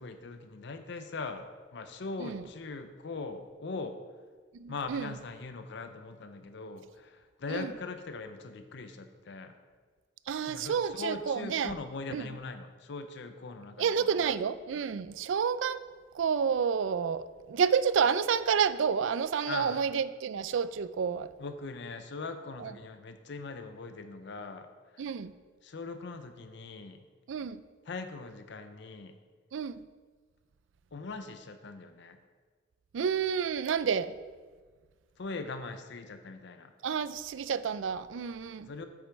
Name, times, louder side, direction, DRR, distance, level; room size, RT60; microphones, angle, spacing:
voice 1, 0.0-4.0 4.7-9.5 10.5-13.9 19.5-19.8 21.4-24.7 24.9-25.1 25.6-27.0 27.9-29.1 30.9-32.2 35.2-36.7 38.6-38.9, left 3 dB, 65° left, 0.6 m, -41 dB
voice 2, 4.5-5.1 7.5-7.7 10.3-11.7 12.1-12.3 13.8-15.8 16.1-21.3 22.6-22.7 25.0-25.3 27.3-27.6 29.5-29.8 32.9-34.1 36.8-38.7, right 7 dB, 90° right, 0.4 m, -30 dB
8.3 x 6.2 x 4.6 m
head